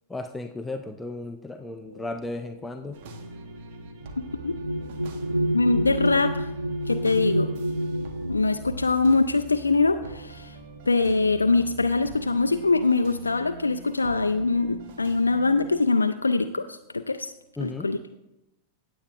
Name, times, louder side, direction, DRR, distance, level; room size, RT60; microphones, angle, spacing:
voice 1, 0.1-3.0 17.6-17.9, left 2 dB, 10° left, 7 dB, 0.5 m, -35 dB
sound 1, 1.9-10.8 11.7-11.8 12.2-12.8, equal, 90° right, 0.4 m, -31 dB
sound 2, 2.9-15.8, right 4 dB, 50° right, 0.9 m, -45 dB
voice 2, 5.5-6.5 6.9-7.5 8.3-10.6 10.9-17.3 17.6-18.0, left 3 dB, 80° left, 9 dB, 0.3 m, -23 dB
16.5 x 7.7 x 2.4 m, 0.91 s
figure-of-eight pair, 90°, 0 cm